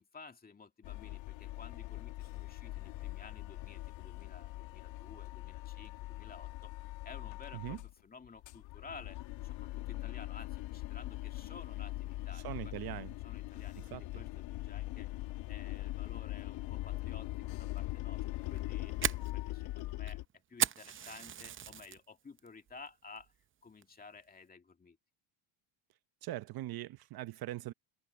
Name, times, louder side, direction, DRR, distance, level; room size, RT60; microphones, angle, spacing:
voice 1, 0.0-12.7 13.2-15.1 15.5-20.2 20.5-23.3 23.6-25.0, left 4 dB, 20° left, 2.3 m, -54 dB
sound 1, 0.8-7.9 8.2-20.2, left 18 dB, 70° left, 2.1 m, -41 dB
voice 2, 12.3-13.1 13.7-14.2 26.2-27.7, right 15 dB, 50° right, 0.9 m, -41 dB
Fire, 18.4-22.0 22.4-22.8 23.2-23.3 23.8-24.2, right 9 dB, 25° right, 0.6 m, -36 dB
cardioid pair, 130°, 46 cm